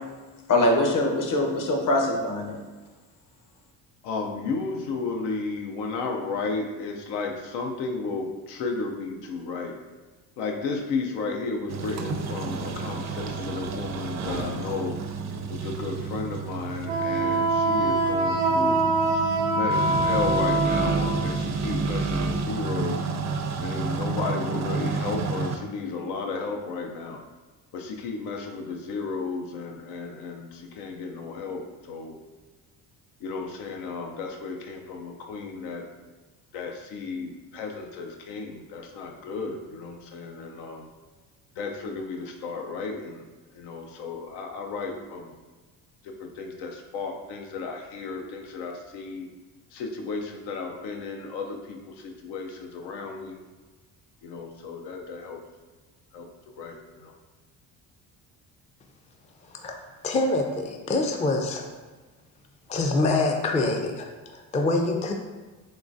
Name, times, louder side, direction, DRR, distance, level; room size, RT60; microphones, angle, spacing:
voice 1, 0.5-2.6, left 1 dB, 50° left, 1 dB, 0.9 m, -23 dB
voice 2, 4.0-9.8 10.4-15.0 15.5-18.9 19.5-23.1 23.6-27.2 27.7-32.2 33.2-35.9 36.5-40.9 41.6-43.2 43.5-45.3 46.0-49.3 49.7-53.4 54.2-55.4 56.1-56.3 56.6-57.2, left 4 dB, 80° left, 2 dB, 0.6 m, -33 dB
sound 1, 11.7-25.6, right 4 dB, 45° right, 0.5 m, -30 dB
Wind instrument woodwind instrument, 16.9-21.3, right 2 dB, 90° right, 0.6 m, -24 dB
voice 3, 60.0-61.7 62.7-65.1, left 2 dB, 20° left, 3 dB, 0.4 m, -25 dB
3.7 x 3.1 x 2.5 m, 1.3 s
supercardioid pair, 75°, 40 cm